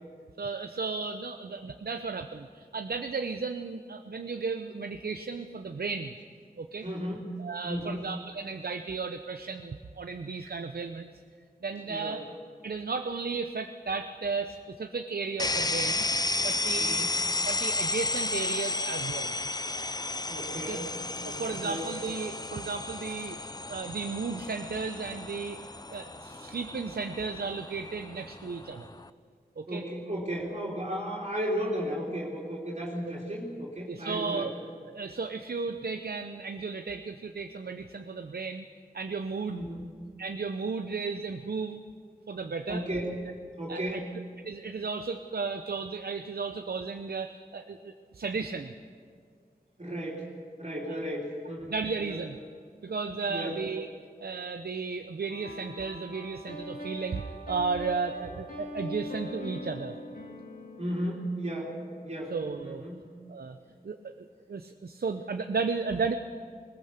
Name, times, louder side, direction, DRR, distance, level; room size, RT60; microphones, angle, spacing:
voice 1, 0.4-6.1 6.6-6.9 7.4-11.1 11.6-12.2 12.6-16.1 16.4-17.1 17.5-19.3 20.7-20.8 21.3-23.4 23.7-25.6 25.9-28.9 29.6-29.8 33.9-34.5 34.9-38.7 38.9-39.6 40.2-41.8 42.3-42.8 43.7-44.0 44.4-48.7 51.7-52.4 52.8-53.9 54.2-59.9 62.3-62.8 63.3-63.6 63.8-66.2, right 4 dB, 75° right, 7 dB, 0.8 m, -34 dB
voice 2, 6.8-7.2 7.6-8.1 11.9-12.2 16.8-17.2 20.3-20.9 21.2-21.8 29.7-34.5 39.5-39.9 42.7-43.2 43.6-44.1 49.8-50.3 50.6-51.7 52.0-52.2 53.3-53.6 60.8-61.8 62.0-62.4 62.6-63.0, equal, 45° right, -4 dB, 3.5 m, -34 dB
sound 1, 15.4-29.1, left 2 dB, 25° left, 0.6 m, -33 dB
sound 2, 55.3-62.1, equal, 60° left, 2.6 m, -42 dB
20.0 x 19.5 x 6.7 m, 2.1 s
wide cardioid pair, 55°, 16 cm